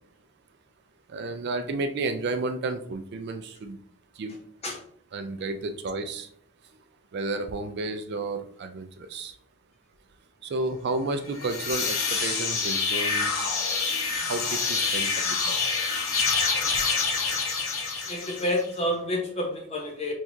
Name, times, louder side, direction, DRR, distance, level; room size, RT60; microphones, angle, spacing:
voice 1, 1.1-3.8 4.2-4.4 5.1-6.3 7.1-9.3 10.4-13.5 14.3-15.6, right 3 dB, 50° right, 8 dB, 0.3 m, -32 dB
sound 1, 11.3-18.7, left 4 dB, 65° left, 0.8 m, -27 dB
voice 2, 18.0-20.1, left 1 dB, 30° left, 1 dB, 0.9 m, -29 dB
6.0 x 2.4 x 2.6 m, 0.62 s
head